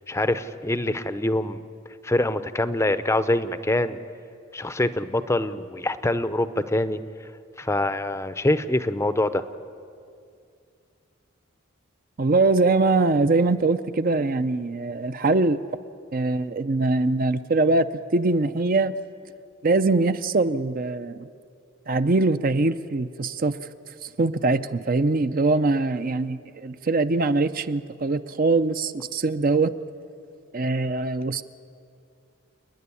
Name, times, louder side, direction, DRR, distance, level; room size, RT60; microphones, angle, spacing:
voice 1, 0.1-1.6 2.0-4.0 4.5-7.0 7.6-9.4, left 1 dB, 15° left, 11 dB, 0.6 m, -24 dB
voice 2, 12.2-15.6 16.1-18.9 19.6-21.3 21.9-23.6 24.0-29.7 30.5-31.4, right 3 dB, 45° right, 11 dB, 0.6 m, -22 dB
29.0 x 10.5 x 9.8 m, 2.4 s
head